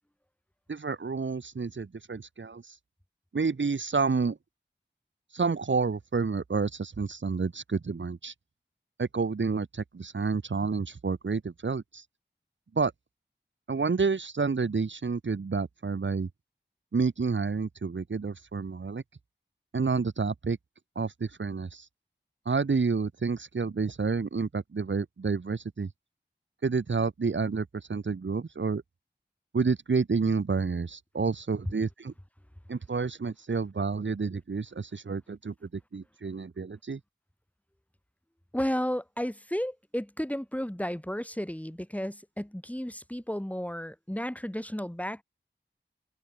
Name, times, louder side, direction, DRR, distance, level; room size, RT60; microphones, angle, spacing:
voice 1, 0.7-2.7 3.3-4.4 5.3-8.3 9.0-12.0 12.7-12.9 13.7-16.3 16.9-19.0 19.7-20.6 21.0-21.9 22.5-25.9 26.6-28.8 29.5-32.1 32.7-37.0, right 4 dB, 80° right, 1.0 m, -29 dB
voice 2, 38.5-45.2, equal, 5° left, 2.2 m, -33 dB
wide cardioid pair, 40°, 19 cm